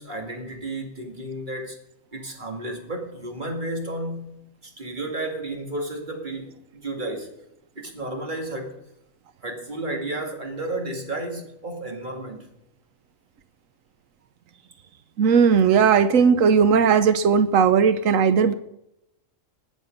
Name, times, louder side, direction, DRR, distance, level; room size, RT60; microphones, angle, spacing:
voice 1, 0.0-1.8 2.1-7.3 7.8-8.8 9.4-12.5, right 1 dB, 35° right, 2.3 m, -32 dB
voice 2, 15.2-18.5, right 6 dB, 85° right, 1.2 m, -17 dB
19.5 x 7.4 x 5.2 m
omnidirectional pair, 1.4 m